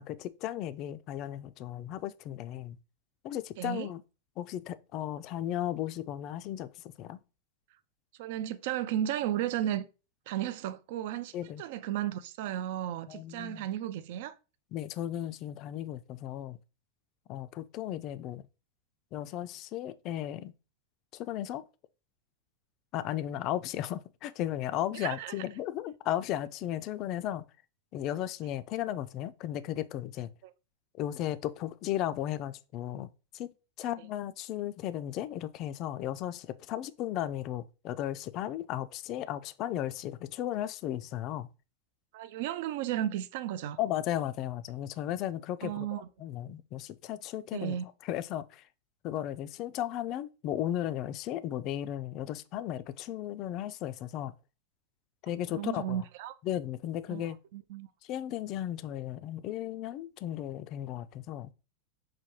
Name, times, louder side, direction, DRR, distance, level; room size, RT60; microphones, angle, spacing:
voice 1, 0.0-2.8 3.2-4.0 4.4-6.7 7.0-7.2 11.3-11.6 13.1-13.7 14.7-16.6 17.3-18.4 19.1-20.5 21.1-21.6 22.9-27.4 27.9-30.3 31.0-33.5 33.8-41.5 43.8-45.9 46.2-47.8 48.0-48.6 49.0-54.3 55.2-56.0 56.4-57.4 58.0-61.5, left 12 dB, 45° left, 0.3 m, -35 dB
voice 2, 3.6-3.9 8.2-9.8 10.3-14.4 24.9-25.3 30.4-30.5 33.8-33.9 42.1-43.8 45.6-46.1 47.5-47.8 55.5-56.4 57.1-57.9, right 11 dB, 65° right, 0.4 m, -34 dB
5.7 x 2.2 x 3.1 m
hypercardioid pair, 125°, 0 cm